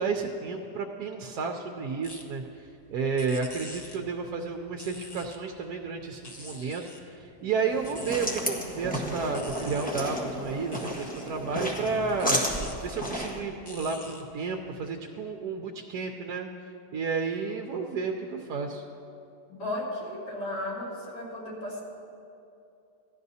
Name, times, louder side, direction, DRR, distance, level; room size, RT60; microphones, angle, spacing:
voice 1, 0.0-2.4 2.9-12.4 12.8-16.5 16.9-18.8, right 5 dB, 70° right, 2 dB, 1.1 m, -32 dB
sound 1, 2.0-14.9, left 1 dB, 35° left, 0.4 m, -48 dB
sound 2, 7.7-13.4, equal, 5° left, 1.2 m, -32 dB
voice 2, 19.5-21.8, left 1 dB, 75° left, -7 dB, 3.1 m, -35 dB
17.0 x 11.5 x 2.7 m, 2.6 s
omnidirectional pair, 1.8 m